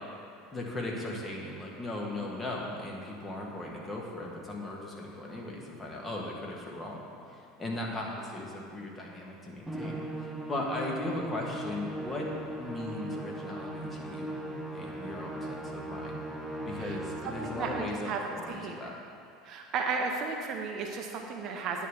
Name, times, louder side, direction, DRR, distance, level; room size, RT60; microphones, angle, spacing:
voice 1, 0.5-12.3 12.6-14.3 14.7-16.1 16.6-18.9, left 1 dB, 20° left, -2 dB, 1.6 m, -37 dB
Musical instrument, 9.7-18.1, right 1 dB, 5° right, 0.9 m, -39 dB
voice 2, 17.2-18.8 19.4-21.9, right 4 dB, 45° right, 2 dB, 0.7 m, -34 dB
9.4 x 3.6 x 6.9 m, 2.6 s
figure-of-eight pair, 75°, 0 cm